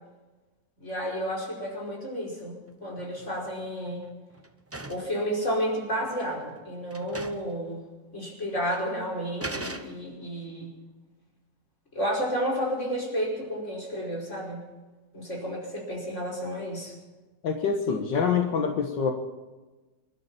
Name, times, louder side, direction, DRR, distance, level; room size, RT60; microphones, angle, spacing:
voice 1, 0.8-4.0 4.9-7.8 8.1-10.7 11.9-14.6 15.1-16.9, equal, 40° left, -2 dB, 5.6 m, -31 dB
sound 1, 3.0-3.5 3.9-5.2 6.1-6.2 6.6-6.7 6.9-7.6 7.9-8.0 8.7-8.9 9.4-10.3, right 2 dB, 20° right, 0.3 m, -39 dB
voice 2, 17.4-19.1, left 6 dB, 85° left, 3 dB, 2.1 m, -25 dB
26.5 x 12.5 x 4.3 m, 1.2 s
omnidirectional pair, 1.9 m